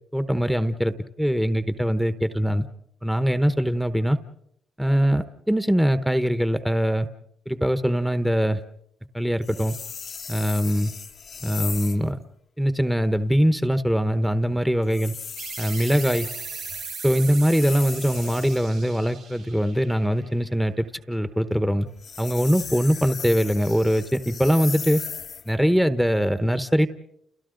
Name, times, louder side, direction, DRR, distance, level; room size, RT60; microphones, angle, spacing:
voice 1, 0.1-2.7 3.0-4.2 4.8-7.1 7.5-8.6 9.1-9.8 10.3-10.9 11.4-12.2 12.6-15.1 15.6-16.3 17.0-21.9 22.2-25.0 25.5-26.9, equal, ahead, 10 dB, 1.0 m, -22 dB
sound 1, 9.4-12.1 14.8-18.7 21.9-25.5, left 6 dB, 50° left, 0.8 m, -37 dB
sound 2, 15.4-20.6, right 6 dB, 85° right, 2.5 m, -38 dB
30.0 x 29.5 x 3.9 m, 0.74 s
cardioid pair, 90°, 0 cm